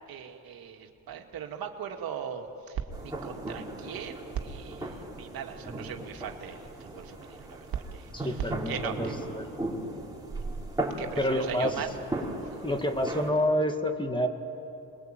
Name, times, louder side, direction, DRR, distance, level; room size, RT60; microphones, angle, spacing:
voice 1, 0.1-9.1 11.0-11.9 12.4-12.6, right 8 dB, 70° right, 3 dB, 2.4 m, -39 dB
sound 1, 2.9-13.3, right 1 dB, 10° right, 4.4 m, -37 dB
voice 2, 8.2-9.1 9.3-9.5 11.2-11.7 12.6-14.3, left 1 dB, 10° left, 6 dB, 2.0 m, -28 dB
28.0 x 22.0 x 9.1 m, 2.9 s
cardioid pair, 105°, 37 cm